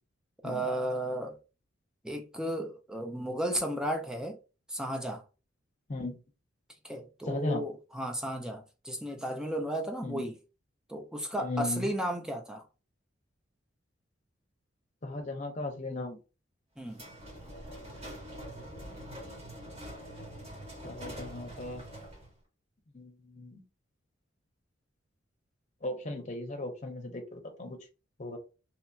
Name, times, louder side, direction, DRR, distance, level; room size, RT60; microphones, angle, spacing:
voice 1, 0.4-1.4 2.0-4.4 4.7-5.2 6.8-10.4 10.9-12.6 16.8-17.0, right 1 dB, 5° right, 0.5 m, -34 dB
voice 2, 7.3-7.6 10.0-10.2 11.4-11.9 15.0-16.2 20.8-21.8 22.9-23.6 25.8-27.8 28.2-28.4, left 2 dB, 40° left, 0.7 m, -36 dB
sound 1, 16.9-22.4, equal, 30° right, 1.5 m, -44 dB
2.8 x 2.8 x 2.3 m
head